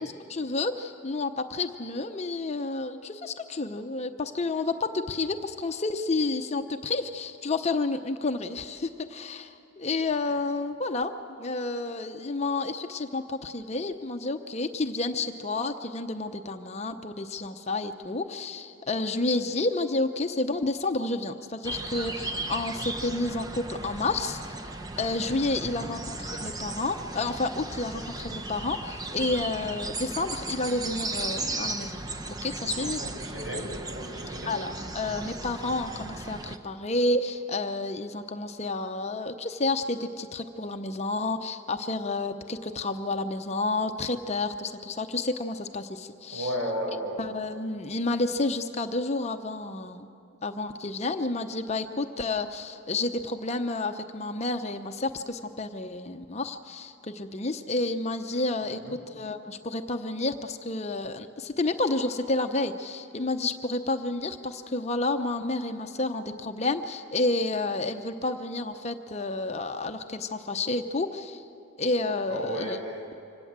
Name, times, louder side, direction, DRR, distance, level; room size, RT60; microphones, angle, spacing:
voice 1, 0.0-11.1 11.4-24.4 25.0-32.0 32.3-33.0 34.5-46.5 47.2-50.1 50.4-71.4 71.8-72.8, left 2 dB, 35° left, 7 dB, 0.7 m, -30 dB
sound 1, 21.6-36.6, right 2 dB, 20° right, 0.8 m, -36 dB
voice 2, 25.6-25.9 33.0-34.5 46.3-47.1 58.8-59.0 72.3-73.0, equal, 60° right, 0 dB, 5.4 m, -34 dB
25.5 x 17.5 x 7.4 m, 2.6 s
head